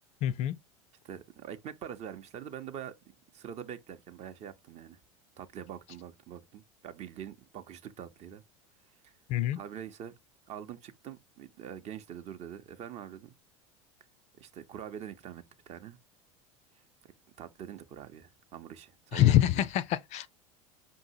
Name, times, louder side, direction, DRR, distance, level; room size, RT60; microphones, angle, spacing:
voice 1, 0.2-0.5 9.3-9.6 19.1-20.3, left 13 dB, 40° left, 0.4 m, -25 dB
voice 2, 1.0-2.9 3.3-5.0 5.4-8.4 9.0-9.1 9.5-10.1 10.5-13.3 14.4-16.0 17.4-19.7, right 9 dB, 40° right, 0.7 m, -44 dB
5.4 x 2.7 x 2.7 m
hypercardioid pair, 80°, 17 cm